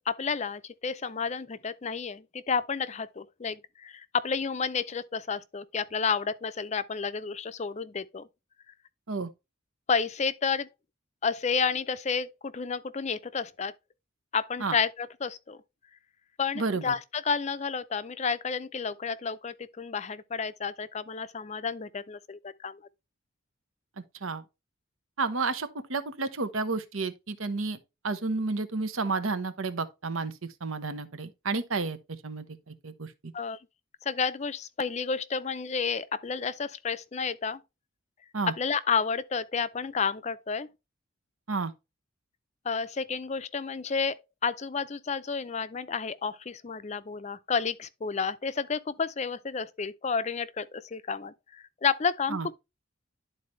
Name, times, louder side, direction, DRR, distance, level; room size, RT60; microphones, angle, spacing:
voice 1, 0.1-8.3 9.9-10.7 11.2-13.7 14.3-15.6 16.4-22.8 33.3-33.6 34.0-37.6 38.6-40.7 42.7-44.2 44.4-52.5, left 5 dB, 35° left, 0.4 m, -31 dB
voice 2, 16.5-16.9 24.2-24.4 25.2-27.8 28.0-30.3 30.6-33.1 38.3-38.5 41.5-41.7 52.3-52.5, right 3 dB, 85° right, 1.0 m, -31 dB
11.5 x 4.1 x 3.1 m
head